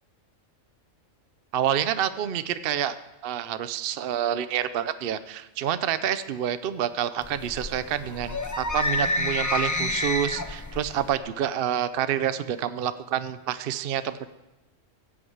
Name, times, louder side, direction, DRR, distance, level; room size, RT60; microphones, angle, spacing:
voice 1, 1.5-3.0 3.2-14.2, right 10 dB, 60° right, 12 dB, 0.7 m, -28 dB
sound 1, 7.2-11.2, left 2 dB, 20° left, 0.6 m, -29 dB
15.5 x 6.1 x 8.0 m, 1.0 s
omnidirectional pair, 1.3 m